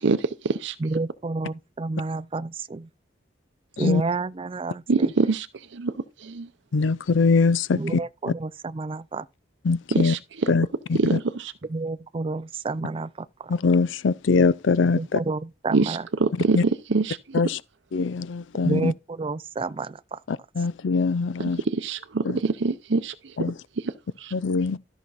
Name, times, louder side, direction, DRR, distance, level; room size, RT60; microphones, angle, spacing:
voice 1, 0.0-0.7 4.9-5.5 5.7-5.9 6.2-6.5 9.9-10.5 10.9-11.5 15.7-17.4 21.4-23.5 23.8-23.9 24.2-24.3, right 3 dB, 75° right, 0.7 m, -25 dB
voice 2, 0.8-2.9 3.8-5.1 7.7-9.3 11.7-13.5 14.9-16.1 18.6-20.2, right 3 dB, 30° right, 0.4 m, -30 dB
voice 3, 6.7-7.8 9.7-10.1 10.5-11.2 13.5-15.2 16.5-16.6 17.3-17.6 17.9-18.9 20.3-21.6 22.2-22.4 23.4-23.5 24.3-24.8, left 4 dB, 80° left, 0.5 m, -22 dB
13.5 x 5.9 x 4.0 m
head